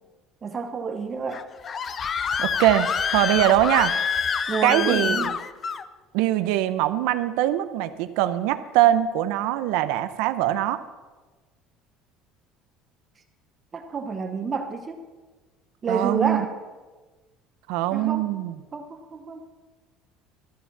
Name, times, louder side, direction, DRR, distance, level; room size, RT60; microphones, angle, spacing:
voice 1, 0.4-1.4 4.5-5.3 13.7-15.0 15.8-16.5 17.9-18.3 18.7-19.4, right 5 dB, 25° right, 7 dB, 0.8 m, -29 dB
Screaming, 1.3-5.8, left 6 dB, 25° left, 0.4 m, -26 dB
voice 2, 2.4-3.9 4.6-5.3 6.1-10.8 15.9-16.4 17.7-18.6, right 13 dB, 75° right, 12 dB, 0.6 m, -22 dB
13.5 x 7.2 x 7.2 m, 1.3 s
cardioid pair, 160°, 0 cm